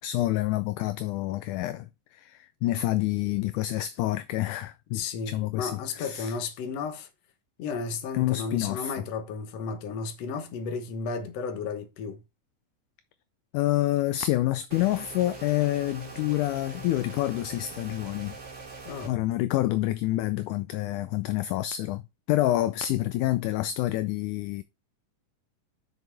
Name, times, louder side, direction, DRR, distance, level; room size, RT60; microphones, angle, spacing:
voice 1, 0.0-6.3 8.1-8.9 13.5-18.4 19.0-22.0 22.3-24.6, left 15 dB, 80° left, 1.9 m, -28 dB
voice 2, 4.9-7.1 7.6-12.2 18.9-19.2, left 5 dB, 60° left, 2.0 m, -33 dB
sound 1, 14.7-19.1, right 4 dB, 35° right, 3.2 m, -43 dB
7.2 x 6.3 x 3.3 m
omnidirectional pair, 3.9 m